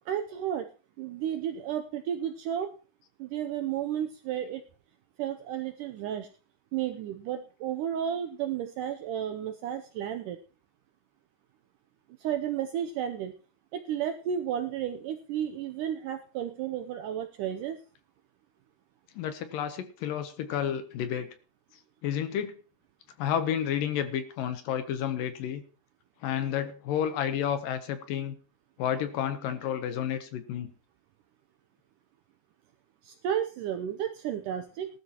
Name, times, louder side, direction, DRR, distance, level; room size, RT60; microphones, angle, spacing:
voice 1, 0.1-0.7 1.0-2.7 3.2-4.6 5.2-6.3 6.7-10.4 12.2-13.3 13.7-17.8 33.0-34.9, right 9 dB, 80° right, 7 dB, 1.9 m, -32 dB
voice 2, 19.2-21.3 22.0-22.5 23.2-25.6 26.2-28.4 28.8-30.7, left 9 dB, 70° left, 10 dB, 2.4 m, -31 dB
18.5 x 12.5 x 2.9 m, 0.36 s
omnidirectional pair, 4.4 m